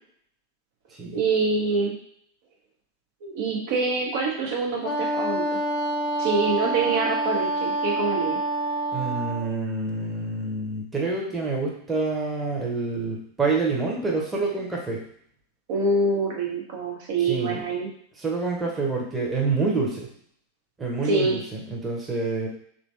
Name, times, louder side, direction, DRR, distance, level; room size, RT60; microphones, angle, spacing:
voice 1, 1.1-1.9 3.2-5.6 6.2-8.4 15.7-17.9 21.0-21.4, right 3 dB, 50° right, -1 dB, 0.7 m, -25 dB
Wind instrument woodwind instrument, 4.8-9.5, right 2 dB, 40° left, 0.5 m, -27 dB
voice 2, 8.9-15.0 17.3-17.6 18.2-20.1 20.8-22.5, right 3 dB, 15° right, -3 dB, 1.0 m, -27 dB
3.2 x 2.8 x 3.2 m, 0.66 s
figure-of-eight pair, 90°, 0 cm